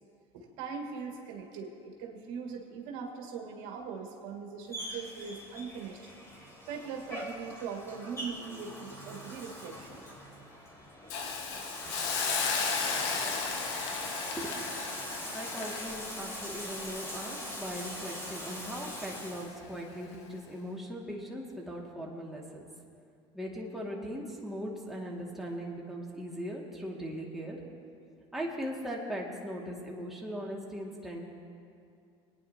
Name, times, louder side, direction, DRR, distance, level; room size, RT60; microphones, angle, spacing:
voice 1, 0.3-6.0 6.7-10.0, right 5 dB, 75° right, 1 dB, 1.6 m, -41 dB
Bathtub (filling or washing), 4.7-19.5, equal, 20° left, 3.3 m, -42 dB
Hiss, 11.1-18.1 18.5-18.7, left 5 dB, 85° left, 1.5 m, -35 dB
voice 2, 14.4-14.9 15.3-22.6 23.3-27.6 28.3-31.2, equal, ahead, -3 dB, 2.1 m, -39 dB
24.0 x 9.6 x 2.9 m, 2.5 s
supercardioid pair, 90°, 14 cm